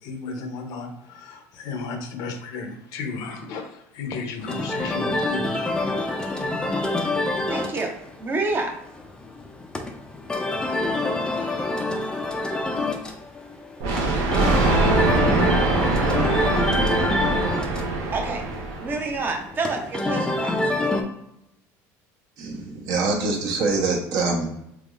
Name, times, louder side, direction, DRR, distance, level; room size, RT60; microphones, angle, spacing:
voice 1, 0.0-5.7, left 4 dB, 65° left, 4 dB, 0.6 m, -34 dB
sound 1, 4.4-21.0, left 2 dB, 10° left, 0.4 m, -27 dB
voice 2, 7.5-7.9 8.2-8.8 18.1-18.4 18.8-20.6, right 3 dB, 25° right, 3 dB, 0.6 m, -27 dB
Thunder, 13.8-19.2, right 3 dB, 90° right, 0.7 m, -23 dB
voice 3, 22.4-24.5, right 3 dB, 60° right, 0 dB, 1.0 m, -24 dB
3.5 x 3.0 x 2.4 m, 0.82 s
cardioid pair, 140°, 7 cm